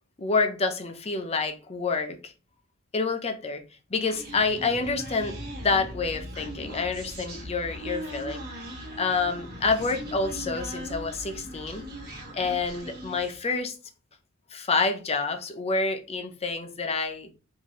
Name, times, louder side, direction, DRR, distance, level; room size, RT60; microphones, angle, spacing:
voice 1, 0.2-2.3 2.9-3.6 3.9-8.4 9.0-11.9 12.3-13.8 14.5-17.3, left 4 dB, 30° left, 0.6 m, -28 dB
Human voice, 4.0-13.5, equal, 45° right, 1.4 m, -39 dB
4.5 x 2.7 x 2.9 m
head